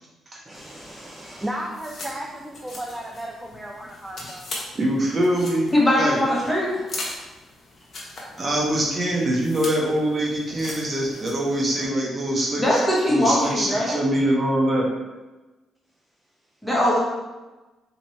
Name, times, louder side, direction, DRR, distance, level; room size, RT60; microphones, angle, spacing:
sound 1, 0.5-11.8, left 2 dB, 45° left, 1.0 m, -40 dB
voice 1, 0.5-4.5, right 1 dB, 15° right, 0 dB, 0.4 m, -35 dB
voice 2, 4.7-6.2 8.4-12.8 13.1-14.9, right 1 dB, 35° right, -2 dB, 0.8 m, -23 dB
voice 3, 5.7-6.8 12.6-14.0 16.6-17.0, left 1 dB, 5° left, -6 dB, 1.4 m, -21 dB
4.2 x 2.8 x 3.1 m, 1.1 s
cardioid pair, 90°, 0 cm